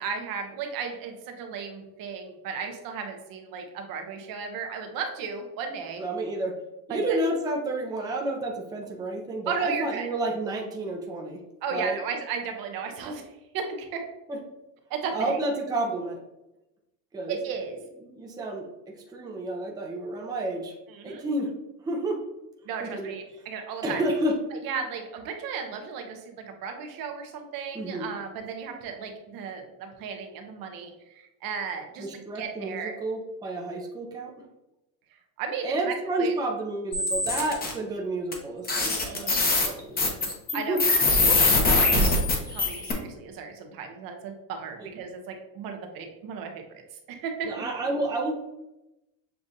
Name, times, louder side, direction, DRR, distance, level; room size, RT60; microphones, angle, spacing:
voice 1, 0.0-6.0 6.9-7.2 9.5-10.1 11.6-13.2 13.5-14.0 14.9-15.4 17.3-17.8 20.9-21.2 22.6-24.0 24.6-32.9 35.4-36.3 38.8-39.7 40.5-40.8 41.2-42.0 42.5-46.6 47.1-47.6, right 6 dB, 60° right, 4 dB, 0.9 m, -35 dB
voice 2, 6.0-6.6 6.9-11.4 11.7-12.0 14.3-14.4 15.1-16.2 17.1-17.4 18.0-18.7 19.1-20.8 21.0-21.5 21.8-22.2 22.8-23.1 23.8-24.3 27.7-28.1 32.0-34.3 35.6-40.8 47.4-48.3, right 1 dB, 10° right, -1 dB, 0.6 m, -30 dB
sound 1, 36.9-37.7 38.3-38.4 38.7-42.9, left 3 dB, 20° left, 0.8 m, -22 dB
6.8 x 2.4 x 2.7 m, 0.92 s
cardioid pair, 140°, 40 cm